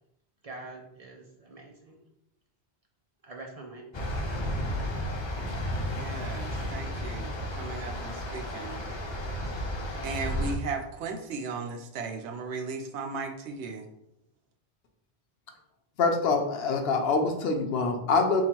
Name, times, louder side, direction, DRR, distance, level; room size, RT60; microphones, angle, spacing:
voice 1, 0.4-1.9 3.3-3.8, right 2 dB, 45° right, 1 dB, 0.5 m, -44 dB
sound 1, 3.9-10.5, left 1 dB, 40° left, 0.4 m, -33 dB
voice 2, 5.9-8.8 10.0-13.9, right 4 dB, 85° right, 5 dB, 0.9 m, -36 dB
voice 3, 16.0-18.4, left 4 dB, 70° left, 4 dB, 0.8 m, -25 dB
3.7 x 2.3 x 4.4 m, 0.82 s
omnidirectional pair, 1.1 m